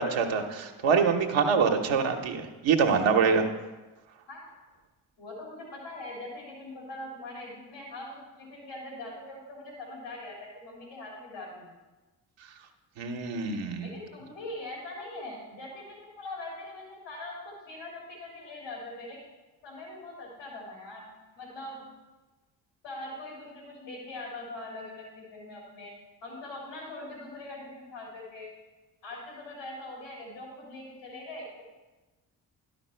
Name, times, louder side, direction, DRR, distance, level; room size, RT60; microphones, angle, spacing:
voice 1, 0.0-3.5 13.0-13.9, right 5 dB, 65° right, 4 dB, 1.1 m, -25 dB
voice 2, 5.2-11.7 13.8-19.2 19.6-21.0 21.3-21.9 22.8-25.9 26.2-28.5 29.0-31.6, left 2 dB, 90° left, -2 dB, 3.1 m, -42 dB
11.5 x 5.9 x 4.4 m, 1.2 s
hypercardioid pair, 40°, 49 cm